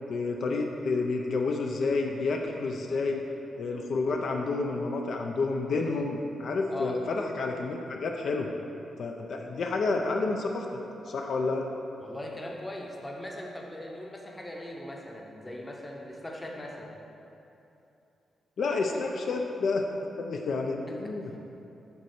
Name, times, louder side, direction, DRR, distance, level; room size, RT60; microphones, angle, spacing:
voice 1, 0.1-3.2 3.6-8.5 9.0-10.7 11.1-11.7 18.6-19.9 20.2-21.4, left 3 dB, 60° left, 2 dB, 0.5 m, -29 dB
voice 2, 12.0-16.9 21.2-21.4, left 1 dB, 15° left, -1 dB, 0.8 m, -40 dB
6.9 x 4.2 x 6.4 m, 2.9 s
wide cardioid pair, 155°, 0 cm